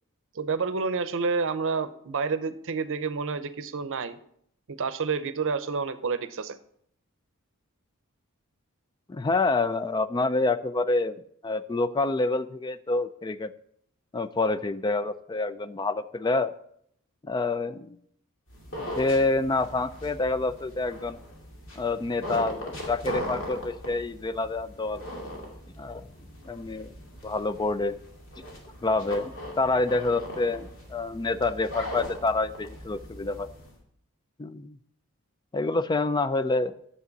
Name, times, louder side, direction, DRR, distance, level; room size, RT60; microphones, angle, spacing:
voice 1, 0.3-4.2 4.7-6.6, right 4 dB, 65° right, 12 dB, 0.7 m, -29 dB
voice 2, 9.1-13.5 14.1-16.5 17.2-18.0 19.0-21.2 21.8-25.0 25.8-26.0 26.4-26.9 27.2-28.0 28.8-33.5 34.4-34.8 35.5-36.7, left 3 dB, 20° left, 14 dB, 0.4 m, -27 dB
sound 1, 18.5-33.7, equal, 65° left, 2.4 m, -40 dB
9.7 x 7.4 x 4.0 m, 0.68 s
head